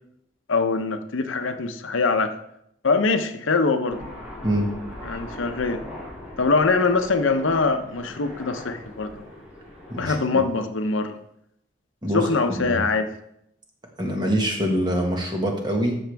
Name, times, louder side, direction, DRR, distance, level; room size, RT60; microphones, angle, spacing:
voice 1, 0.5-2.3 2.8-4.1 5.0-5.8 6.4-9.3 10.0-11.2 12.1-13.1, left 4 dB, 80° left, 8 dB, 0.8 m, -23 dB
Aircraft, 3.9-10.2, left 1 dB, 5° right, 2.6 m, -40 dB
voice 2, 14.0-16.0, equal, 20° right, 1 dB, 1.5 m, -24 dB
13.5 x 6.3 x 3.5 m, 0.76 s
head